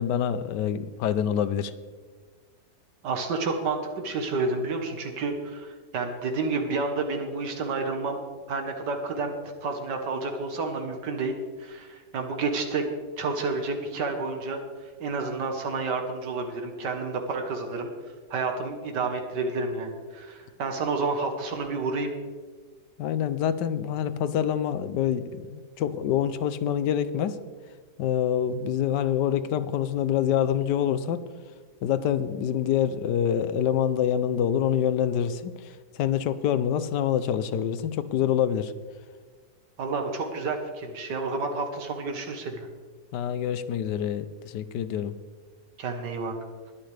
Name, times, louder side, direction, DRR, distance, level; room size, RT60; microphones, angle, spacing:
voice 1, 0.0-1.7 23.0-27.4 28.0-31.2 31.8-38.7 43.1-45.1, left 9 dB, 85° left, 13 dB, 1.3 m, -26 dB
voice 2, 3.0-8.2 8.5-9.3 9.6-12.9 13.2-17.9 18.3-22.1 39.8-42.7 45.8-46.3, right 3 dB, 85° right, 4 dB, 1.9 m, -30 dB
20.5 x 10.0 x 3.4 m, 1.5 s
omnidirectional pair, 1.8 m